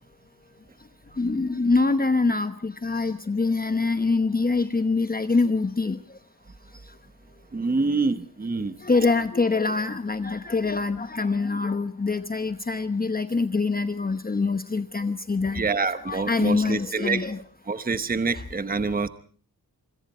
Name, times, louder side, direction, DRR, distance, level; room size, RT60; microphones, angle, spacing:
voice 1, 1.2-6.0 8.8-15.6 16.1-17.4 18.3-18.4, left 3 dB, 25° left, 9 dB, 1.0 m, -24 dB
voice 2, 7.5-8.7 15.5-17.2 17.7-19.1, right 4 dB, 25° right, 11 dB, 1.0 m, -26 dB
26.0 x 23.5 x 4.3 m, 0.44 s
wide cardioid pair, 150°, 36 cm